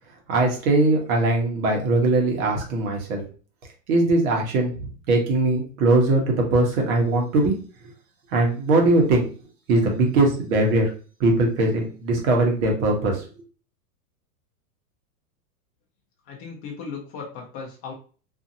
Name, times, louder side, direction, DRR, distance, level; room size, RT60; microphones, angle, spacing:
voice 1, 0.3-3.2 3.9-7.5 8.3-9.3 9.7-10.9 11.2-13.2, right 2 dB, 60° right, 1 dB, 1.1 m, -20 dB
voice 2, 16.3-17.9, left 5 dB, 30° left, -1 dB, 0.5 m, -36 dB
2.7 x 2.6 x 2.6 m, 0.38 s
supercardioid pair, 135°, 47 cm